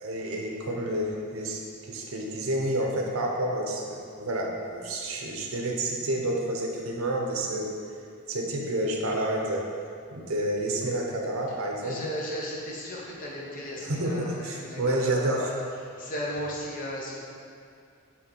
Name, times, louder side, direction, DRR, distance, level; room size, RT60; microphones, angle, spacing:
voice 1, 0.0-7.7 8.3-9.6 10.1-12.0 13.9-15.5, right 1 dB, 75° right, 0 dB, 0.8 m, -29 dB
voice 2, 11.8-17.2, equal, 40° left, -4 dB, 1.0 m, -36 dB
6.3 x 3.7 x 4.5 m, 2.4 s
head